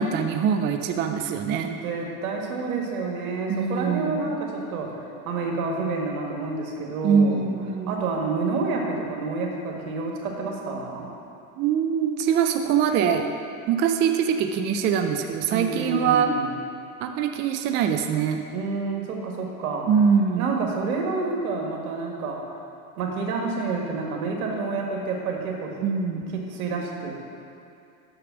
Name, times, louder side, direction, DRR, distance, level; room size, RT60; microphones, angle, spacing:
voice 1, 0.0-1.7 3.5-4.2 7.0-8.0 11.6-13.3 13.7-16.3 17.0-18.4 19.9-20.5 25.8-26.2, right 7 dB, 25° right, 5 dB, 0.4 m, -23 dB
voice 2, 1.7-7.4 7.9-11.1 15.5-16.5 18.5-19.9 20.4-22.4 23.0-25.8 26.1-26.2 26.5-27.1, right 4 dB, 75° right, 0 dB, 1.8 m, -29 dB
6.7 x 6.6 x 5.9 m, 2.6 s
hypercardioid pair, 110°, 43 cm